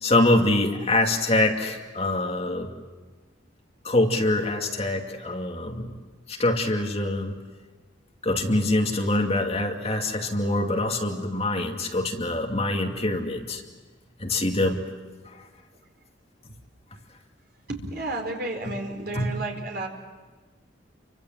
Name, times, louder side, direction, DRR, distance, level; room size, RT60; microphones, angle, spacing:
voice 1, 0.0-2.7 3.8-5.9 6.3-7.4 8.2-13.6 14.2-14.8 15.3-15.4 19.1-19.3, left 2 dB, 35° left, 2 dB, 2.4 m, -24 dB
voice 2, 17.7-19.9, right 2 dB, 55° right, 2 dB, 4.5 m, -32 dB
30.0 x 25.0 x 7.6 m, 1.3 s
head